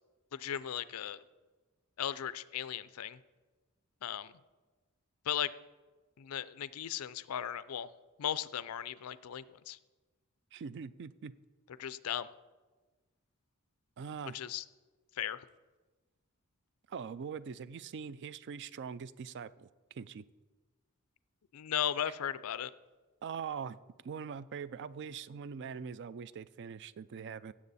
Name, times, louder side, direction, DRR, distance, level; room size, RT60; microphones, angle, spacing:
voice 1, 0.3-1.2 2.0-3.2 4.0-4.3 5.3-5.5 6.2-7.9 8.2-9.8 11.8-12.3 14.3-14.6 15.2-15.4 21.5-22.7, left 10 dB, 85° left, 16 dB, 0.4 m, -36 dB
voice 2, 10.5-11.3 14.0-14.4 16.9-19.7 19.9-20.2 23.2-23.8 24.0-27.5, right 6 dB, 55° right, 17 dB, 0.4 m, -42 dB
16.5 x 7.5 x 4.1 m, 1.3 s
head